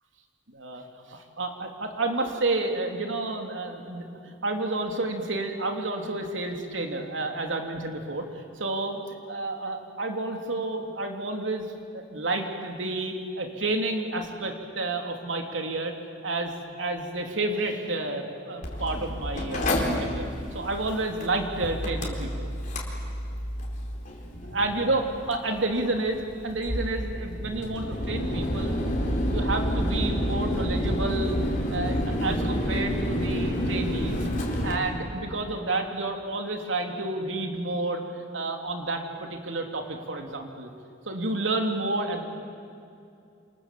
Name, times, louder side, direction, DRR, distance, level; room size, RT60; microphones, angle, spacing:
voice 1, 0.5-4.0 4.4-9.0 9.3-11.7 11.9-15.9 16.2-19.7 20.0-20.3 20.5-22.5 24.5-28.8 29.2-31.4 31.7-34.3 34.6-40.7 41.1-42.2, right 2 dB, 90° right, 3 dB, 3.0 m, -30 dB
Mechanical fan, 18.6-34.7, equal, 45° left, 4.2 m, -29 dB
27.5 x 27.0 x 7.6 m, 2.5 s
head